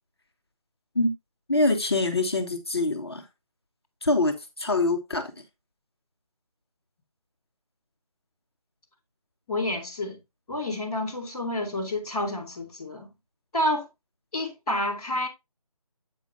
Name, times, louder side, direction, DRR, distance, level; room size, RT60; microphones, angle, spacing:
voice 1, 1.5-3.2 4.0-5.3, left 2 dB, 45° left, 1.1 m, -24 dB
voice 2, 9.5-10.2 10.5-13.1 13.5-13.9 14.3-15.3, left 1 dB, 5° left, 1.5 m, -29 dB
8.5 x 7.0 x 2.7 m
figure-of-eight pair, 175°, 19 cm